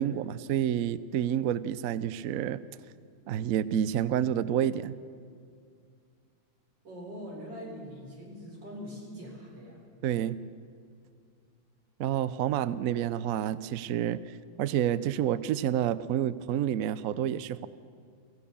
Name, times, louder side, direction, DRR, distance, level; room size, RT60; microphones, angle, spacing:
voice 1, 0.0-2.6 3.3-5.0 10.0-10.4 12.0-14.2 14.6-17.7, right 10 dB, 80° right, 16 dB, 0.7 m, -29 dB
voice 2, 6.8-9.9, equal, 60° right, -1 dB, 5.0 m, -43 dB
24.5 x 15.5 x 6.9 m, 2.3 s
omnidirectional pair, 2.2 m